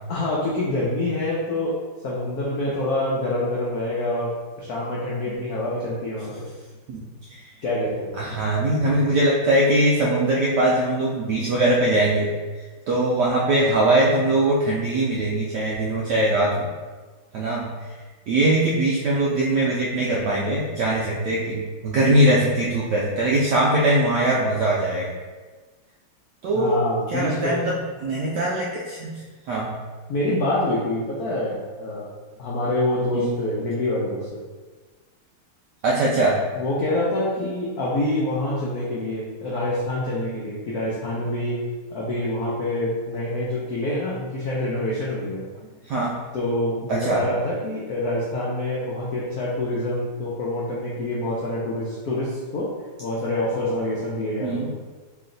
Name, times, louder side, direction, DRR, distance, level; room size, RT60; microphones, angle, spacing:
voice 1, 0.1-1.8 2.0-6.5 7.6-8.1 26.5-27.7 30.1-32.1 32.4-34.4 36.5-41.6 41.9-45.5 46.3-52.7 53.0-54.7, left 1 dB, 80° left, -5 dB, 0.8 m, -26 dB
voice 2, 8.2-12.3 12.5-16.7 17.3-18.0 18.3-25.1 26.4-26.8 27.1-29.1 29.5-29.8 33.1-33.3 35.8-36.4 45.8-46.2 46.9-47.2 54.4-54.7, right 1 dB, 80° right, -4 dB, 0.9 m, -21 dB
3.2 x 3.0 x 3.7 m, 1.4 s
omnidirectional pair, 2.4 m